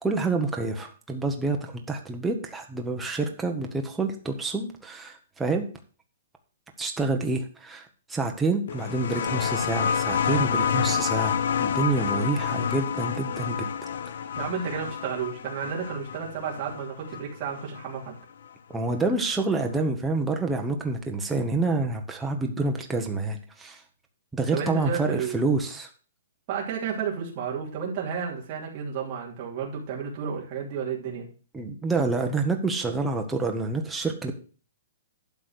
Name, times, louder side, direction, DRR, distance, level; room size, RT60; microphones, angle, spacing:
voice 1, 0.0-5.7 6.8-11.3 11.6-13.7 18.7-23.8 24.3-25.9 31.5-34.3, right 3 dB, 5° right, 2 dB, 1.0 m, -28 dB
sound 1, 8.7-18.0 19.1-19.2, left 7 dB, 55° left, 0.8 m, -29 dB
voice 2, 14.4-18.1 24.5-25.6 26.5-31.3, right 7 dB, 25° right, -3 dB, 2.9 m, -32 dB
12.0 x 4.1 x 8.0 m, 0.38 s
hypercardioid pair, 175°, 0 cm